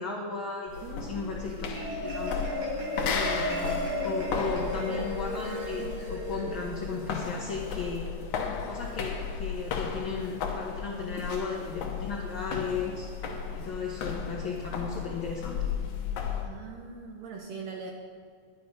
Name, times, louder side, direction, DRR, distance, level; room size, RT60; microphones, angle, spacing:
voice 1, 0.0-2.4 3.1-8.1 8.7-13.1 13.5-15.7, left 4 dB, 55° left, -2 dB, 1.5 m, -35 dB
sound 1, 0.7-16.5, left 6 dB, 75° left, 2.4 m, -35 dB
voice 2, 0.8-1.3 1.6-2.1 16.4-17.9, right 5 dB, 70° right, 2 dB, 1.8 m, -42 dB
Marimba xylophone, 1.5-8.1, equal, 55° right, 4.8 m, -34 dB
11.0 x 11.0 x 5.3 m, 2.1 s
omnidirectional pair, 3.6 m